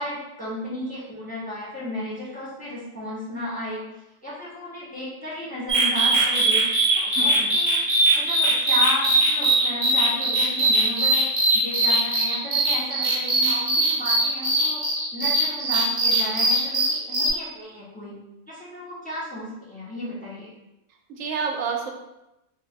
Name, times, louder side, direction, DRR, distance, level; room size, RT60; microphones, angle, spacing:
voice 1, 0.0-3.8 4.2-6.6 6.9-7.8 8.1-14.8 15.1-18.2 18.5-20.5, left 1 dB, 5° left, -8 dB, 1.0 m, -34 dB
sound 1, 5.7-17.3, right 2 dB, 40° right, 0.9 m, -21 dB
voice 2, 7.0-7.8 21.1-21.9, right 5 dB, 90° right, 2 dB, 1.0 m, -30 dB
3.5 x 2.6 x 3.2 m, 0.93 s
omnidirectional pair, 1.3 m